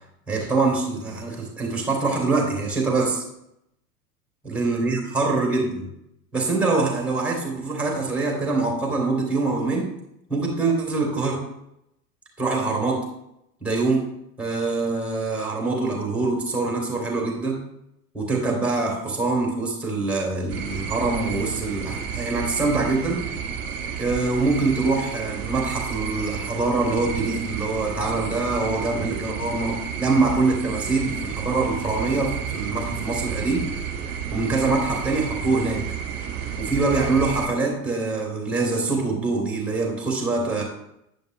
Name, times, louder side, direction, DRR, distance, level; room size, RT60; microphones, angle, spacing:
voice 1, 0.3-3.2 4.4-5.8 6.3-9.8 10.3-11.4 12.4-13.0 13.6-14.0 14.4-17.6 18.1-23.2 24.0-33.6 34.3-35.8 36.6-40.6, right 3 dB, 5° right, -1 dB, 3.2 m, -24 dB
sound 1, 20.5-37.5, right 6 dB, 35° right, 1.9 m, -31 dB
10.5 x 9.9 x 2.3 m, 0.82 s
figure-of-eight pair, 85°, 46 cm